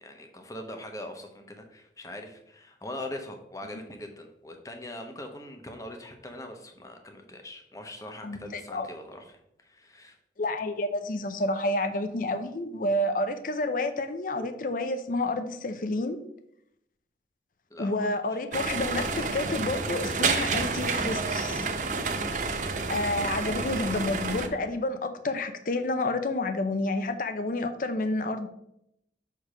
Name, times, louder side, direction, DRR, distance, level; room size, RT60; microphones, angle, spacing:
voice 1, 0.0-10.2 17.7-18.4 23.4-23.8, left 1 dB, 20° left, 4 dB, 0.8 m, -42 dB
voice 2, 8.2-8.9 10.4-16.2 17.8-21.7 22.9-28.5, left 2 dB, 50° left, 9 dB, 0.6 m, -29 dB
sound 1, 18.5-24.5, right 4 dB, 45° right, 0.6 m, -29 dB
6.5 x 3.5 x 6.0 m, 0.77 s
head